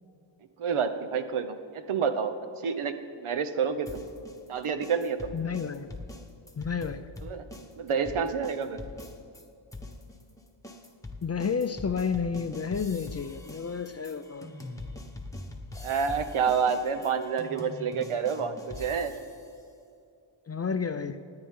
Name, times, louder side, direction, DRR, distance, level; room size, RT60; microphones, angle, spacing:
voice 1, 0.6-2.3 2.6-4.0 4.5-5.3 7.2-7.5 7.8-8.8 15.8-19.1, right 6 dB, 80° right, 9 dB, 1.0 m, -28 dB
sound 1, 3.9-9.4 9.7-19.5, left 2 dB, 5° left, 1.1 m, -43 dB
voice 2, 5.3-5.9 6.6-7.1 11.2-14.5 20.5-21.2, left 6 dB, 35° left, 10 dB, 0.4 m, -31 dB
27.5 x 9.8 x 3.7 m, 2.5 s
wide cardioid pair, 135°, 49 cm